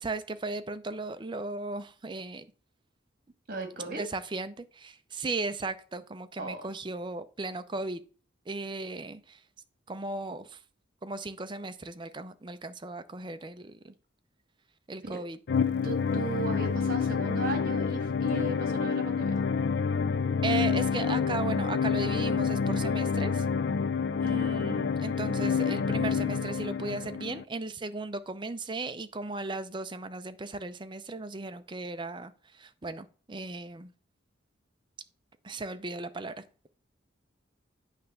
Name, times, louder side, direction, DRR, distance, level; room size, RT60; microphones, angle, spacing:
voice 1, 0.0-2.5 3.9-8.0 8.5-9.4 9.9-10.6 11.0-13.9 14.9-15.4 20.4-23.5 24.2-33.9 35.4-36.7, right 3 dB, 25° right, 11 dB, 0.5 m, -36 dB
voice 2, 3.5-4.0 6.4-6.7 15.0-15.2 15.8-19.4 24.3-24.4, right 3 dB, 45° right, 5 dB, 1.8 m, -37 dB
sound 1, 15.5-27.4, left 5 dB, 55° left, 0.4 m, -28 dB
9.0 x 3.5 x 6.6 m, 0.39 s
head